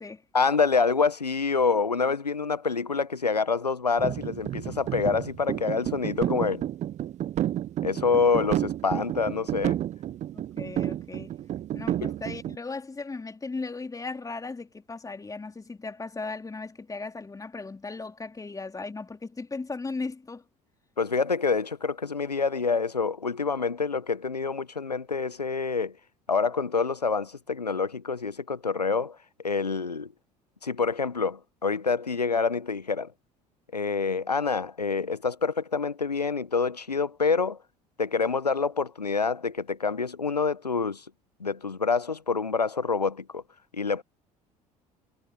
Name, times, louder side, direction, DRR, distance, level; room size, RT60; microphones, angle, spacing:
voice 1, 0.3-6.6 7.8-9.8 12.0-12.1 21.0-25.9 26.3-29.2 29.4-30.1 30.6-33.1 33.7-37.6 38.0-41.0 41.4-43.4 43.7-44.0, left 4 dB, 90° left, 0.9 m, -27 dB
sound 1, 4.0-12.6, right 12 dB, 35° right, 0.5 m, -31 dB
voice 2, 10.3-11.4 11.7-20.4, left 3 dB, 15° left, 3.1 m, -37 dB
figure-of-eight pair, 60°, 20 cm